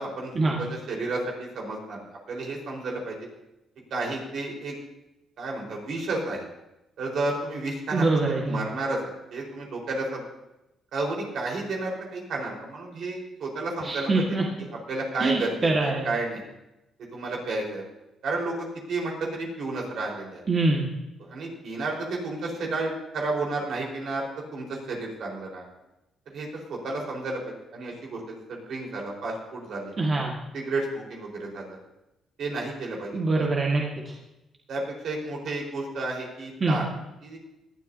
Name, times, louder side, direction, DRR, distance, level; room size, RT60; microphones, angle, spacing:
voice 1, 0.0-0.3 0.6-2.0 2.3-3.2 3.9-4.7 5.4-6.4 7.0-9.0 9.3-10.2 10.9-14.4 14.9-16.4 17.1-17.8 18.2-20.4 21.2-24.2 24.5-25.6 26.3-27.4 27.7-30.0 30.5-31.8 32.4-33.5 34.7-36.8 37.2-37.4, right 2 dB, 65° right, -2 dB, 4.4 m, -31 dB
voice 2, 7.9-8.6 13.8-14.4 15.2-16.0 20.5-20.9 30.0-30.3 33.1-34.1 36.6-36.8, right 3 dB, 35° right, -1 dB, 1.7 m, -24 dB
19.5 x 12.0 x 2.8 m, 0.93 s
cardioid pair, 90°, 0 cm